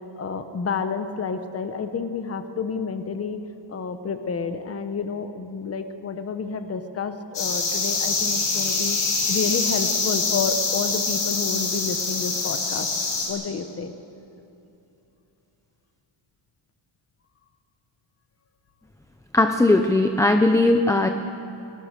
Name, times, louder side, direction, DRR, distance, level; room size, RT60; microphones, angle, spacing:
voice 1, 0.2-3.4 3.7-9.0 9.3-12.9 13.3-13.9, left 5 dB, 30° left, 9 dB, 1.0 m, -30 dB
sound 1, 7.3-13.3, left 4 dB, 75° left, 5.7 m, -25 dB
voice 2, 19.3-21.1, left 2 dB, 5° left, 6 dB, 0.5 m, -18 dB
29.5 x 18.5 x 6.6 m, 2.9 s
wide cardioid pair, 175°, 48 cm